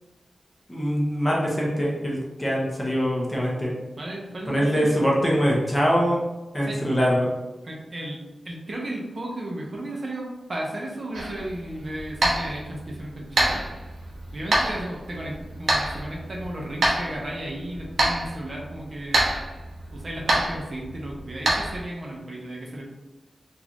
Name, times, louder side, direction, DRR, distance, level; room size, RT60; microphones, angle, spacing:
voice 1, 0.7-3.7 4.5-6.2 6.5-7.3, equal, 15° left, -4 dB, 0.9 m, -23 dB
voice 2, 4.0-4.9 6.6-6.8 7.6-8.2 8.4-13.7 14.3-19.2 19.9-22.8, right 1 dB, 45° right, -2 dB, 0.7 m, -34 dB
sound 1, 11.1-21.8, right 1 dB, 85° right, 0.8 m, -27 dB
4.0 x 2.5 x 2.9 m, 1.1 s
wide cardioid pair, 130°, 0 cm